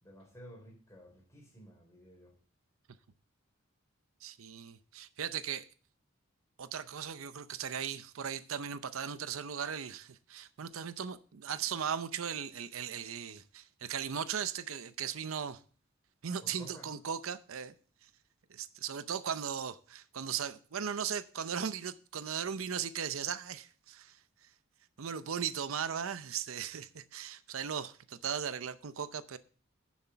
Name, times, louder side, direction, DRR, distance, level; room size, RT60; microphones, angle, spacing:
voice 1, 0.0-2.3 16.4-16.9, equal, 15° left, 4.0 m, -53 dB
voice 2, 4.2-5.7 6.6-15.6 16.2-17.7 18.5-24.2 25.0-29.4, right 7 dB, 85° right, 0.6 m, -37 dB
10.0 x 7.3 x 5.6 m
head